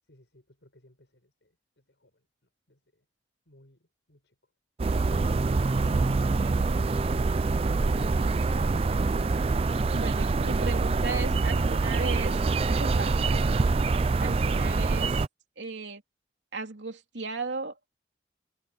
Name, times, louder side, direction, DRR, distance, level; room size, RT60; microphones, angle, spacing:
voice 1, 0.1-2.2 2.7-3.0 3.5-4.3 7.8-8.8, left 1 dB, 85° left, 5.6 m, -55 dB
Thunder Introduces Rain, 4.8-15.3, right 3 dB, 30° right, 0.3 m, -25 dB
voice 2, 9.9-13.1 14.2-15.2 15.6-16.0 16.5-18.0, right 3 dB, 85° right, 3.0 m, -36 dB
head